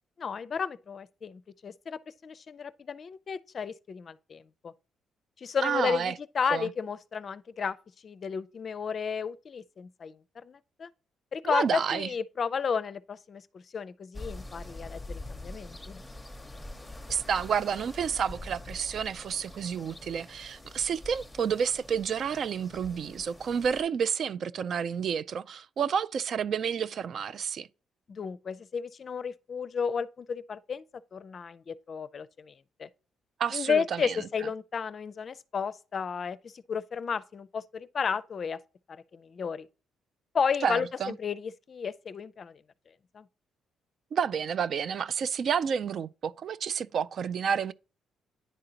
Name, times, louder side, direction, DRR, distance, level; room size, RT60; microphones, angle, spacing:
voice 1, 0.2-4.7 5.4-7.8 8.0-10.9 11.3-16.0 28.1-30.8 31.1-32.5 32.8-32.9 33.5-38.6 38.9-39.7 40.3-42.6 43.1-43.3, left 6 dB, 45° left, 0.4 m, -33 dB
voice 2, 5.6-6.1 6.5-6.7 11.4-12.1 17.1-27.7 33.4-34.2 40.6-41.1 44.1-47.7, right 7 dB, 60° right, 0.3 m, -30 dB
sound 1, 14.1-23.8, left 2 dB, 10° left, 0.8 m, -45 dB
10.0 x 3.8 x 2.8 m
cardioid pair, 90°, 0 cm